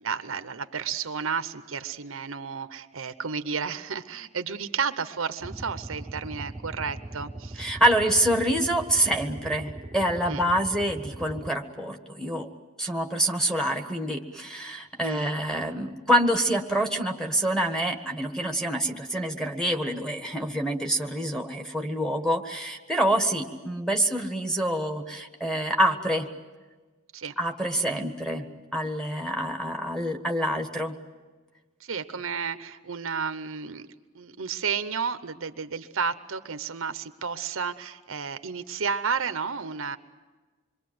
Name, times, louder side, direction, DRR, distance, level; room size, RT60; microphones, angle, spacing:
voice 1, 0.0-7.7 10.3-10.4 15.0-15.3 27.1-27.3 31.8-33.9 34.1-40.0, right 6 dB, 65° right, 11 dB, 0.8 m, -32 dB
sound 1, 5.4-11.5, right 2 dB, 20° right, 0.8 m, -40 dB
voice 2, 7.6-12.5 12.8-26.3 27.4-31.0, right 1 dB, 5° left, 3 dB, 1.4 m, -26 dB
26.5 x 23.0 x 7.8 m, 1.3 s
head